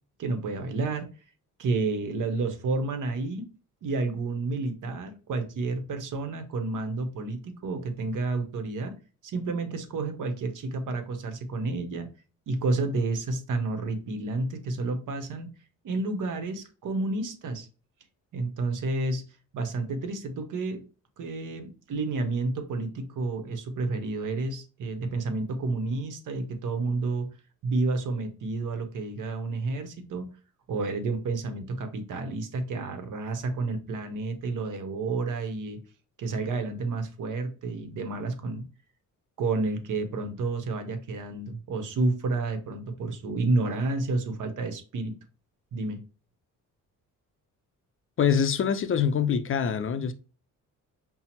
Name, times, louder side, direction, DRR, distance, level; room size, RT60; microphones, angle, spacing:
voice 1, 0.2-1.1 1.6-3.5 3.8-8.9 9.2-12.1 12.5-15.5 15.8-17.7 18.3-19.2 19.5-20.8 21.2-27.3 27.6-30.3 30.7-35.8 36.2-38.6 39.4-45.1 45.7-46.0, right 3 dB, 70° right, 0.8 m, -30 dB
voice 2, 48.2-50.1, left 7 dB, 40° left, 0.4 m, -24 dB
5.5 x 2.0 x 2.8 m
cardioid pair, 105°, 33 cm